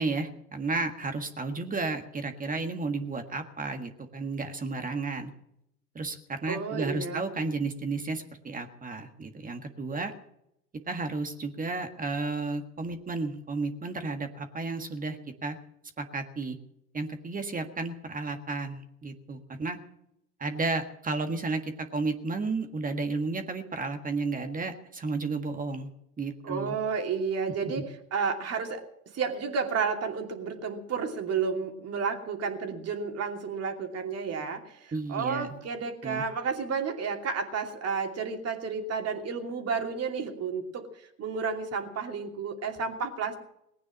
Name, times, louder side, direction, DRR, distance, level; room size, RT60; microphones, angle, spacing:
voice 1, 0.0-5.3 6.0-10.1 10.9-15.6 16.0-16.6 16.9-19.8 20.4-25.9 26.2-26.8 27.6-27.7 34.9-35.5 36.0-36.2, right 3 dB, 20° right, 7 dB, 1.7 m, -32 dB
voice 2, 6.5-7.3 26.4-27.8 28.1-28.8 29.1-43.4, right 5 dB, 35° right, 3 dB, 2.8 m, -31 dB
19.5 x 9.5 x 7.4 m, 0.79 s
hypercardioid pair, 85°, 45 cm